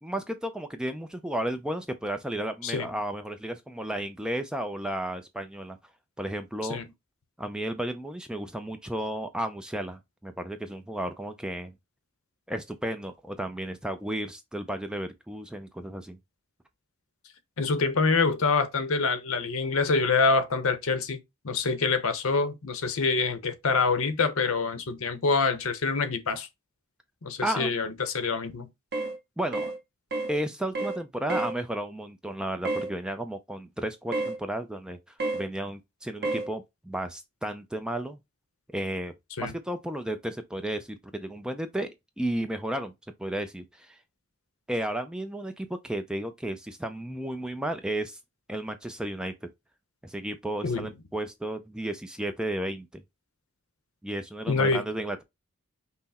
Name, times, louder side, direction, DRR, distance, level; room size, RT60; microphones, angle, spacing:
voice 1, 0.0-5.8 6.2-6.8 7.4-11.7 12.5-16.2 27.4-27.7 29.4-29.7 30.3-35.0 35.3-38.2 38.7-41.9 42.2-42.9 43.2-44.0 44.7-48.2 48.5-49.3 50.0-53.0 54.0-55.2, right 1 dB, 5° right, 0.3 m, -33 dB
voice 2, 2.6-2.9 6.6-6.9 17.6-21.2 21.4-26.5 27.2-28.7 39.4-39.5 50.6-50.9 54.5-54.9, left 4 dB, 65° left, 0.8 m, -26 dB
sound 1, 28.9-29.2 29.5-29.8 30.1-30.3 30.7-31.0 31.3-31.5 32.6-32.9 34.1-34.4 35.2-35.4 36.2-36.5, right 2 dB, 45° right, 1.0 m, -29 dB
5.6 x 2.0 x 4.0 m
head